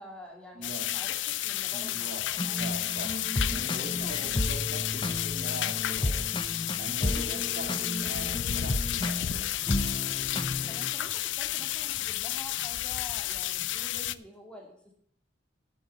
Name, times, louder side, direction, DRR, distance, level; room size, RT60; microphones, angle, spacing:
voice 1, 0.0-2.7 3.4-4.4 10.7-14.9, equal, 5° left, 0 dB, 2.6 m, -48 dB
voice 2, 0.5-0.9 1.7-2.2 2.5-6.3 6.8-9.6, right 2 dB, 50° right, 2 dB, 2.6 m, -42 dB
sound 1, 0.6-14.1, left 14 dB, 70° left, 0.5 m, -32 dB
sound 2, 2.2-14.3, right 1 dB, 70° right, 4.4 m, -53 dB
sound 3, 2.4-10.9, left 1 dB, 25° left, 0.8 m, -33 dB
9.6 x 7.1 x 8.1 m, 0.65 s
head